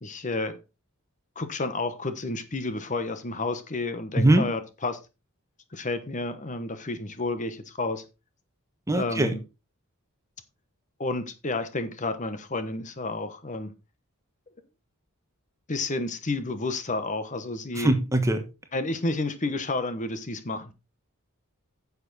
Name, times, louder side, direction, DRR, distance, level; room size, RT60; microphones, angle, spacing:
voice 1, 0.0-0.6 1.4-5.0 5.7-8.0 8.9-9.4 11.0-13.7 15.7-17.9 18.7-20.7, left 2 dB, 35° left, 1.1 m, -30 dB
voice 2, 4.2-4.5 8.9-9.3 17.8-18.4, right 1 dB, 15° right, 1.2 m, -21 dB
9.8 x 7.0 x 4.1 m
head